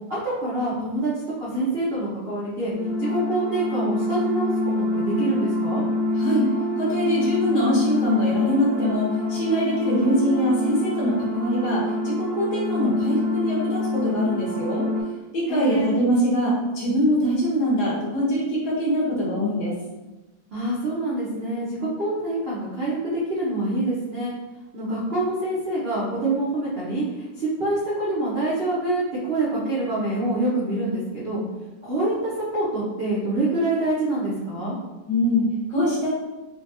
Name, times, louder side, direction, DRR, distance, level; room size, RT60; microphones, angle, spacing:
voice 1, 0.1-1.1 1.4-2.7 3.0-5.8 15.5-16.0 20.5-24.3 24.7-27.0 27.4-31.4 31.8-34.8, right 2 dB, 60° right, -8 dB, 0.6 m, -26 dB
sound 1, 2.7-15.0, left 1 dB, 10° right, 0.6 m, -26 dB
voice 2, 6.8-14.8 15.3-19.7 35.1-36.1, equal, 60° left, -6 dB, 1.5 m, -23 dB
4.0 x 2.3 x 2.6 m, 1.1 s
omnidirectional pair, 2.0 m